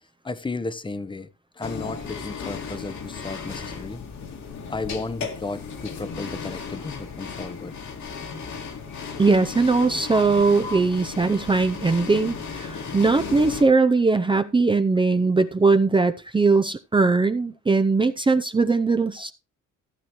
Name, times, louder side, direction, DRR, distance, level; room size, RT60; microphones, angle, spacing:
voice 1, 0.2-1.3 1.6-4.0 4.7-7.7 10.1-10.2 10.6-10.8, left 3 dB, 15° left, 0.8 m, -33 dB
sound 1, 1.6-13.6, left 5 dB, 70° left, 2.3 m, -35 dB
voice 2, 9.2-19.3, right 3 dB, 15° right, 0.6 m, -20 dB
15.0 x 8.2 x 3.1 m
cardioid pair, 90°, 30 cm